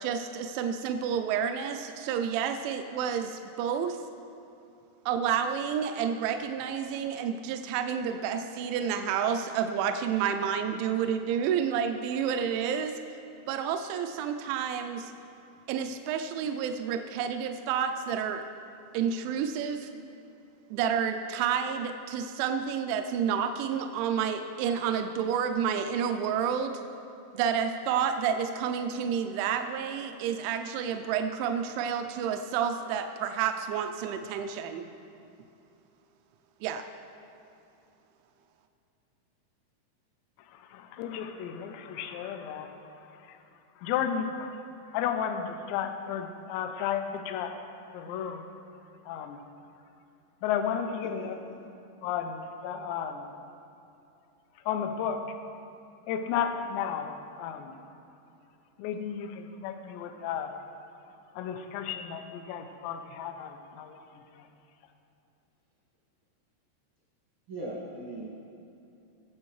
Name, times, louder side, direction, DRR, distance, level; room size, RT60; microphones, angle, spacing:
voice 1, 0.0-4.0 5.1-13.0 13.5-15.1 15.7-18.4 18.9-19.9 20.7-26.8 27.3-34.9 36.6-36.8, right 7 dB, 85° right, 6 dB, 2.8 m, -30 dB
voice 2, 40.5-43.4 43.8-44.6 44.9-47.6 47.9-48.5 49.0-49.4 50.4-51.4 52.0-53.3 54.7-55.4 56.1-57.8 58.8-60.5 61.3-64.5, left 8 dB, 80° left, 7 dB, 2.8 m, -33 dB
voice 3, 51.0-51.5 67.5-68.3, right 1 dB, 60° right, -7 dB, 1.3 m, -40 dB
20.5 x 7.6 x 3.1 m, 2.7 s
omnidirectional pair, 5.3 m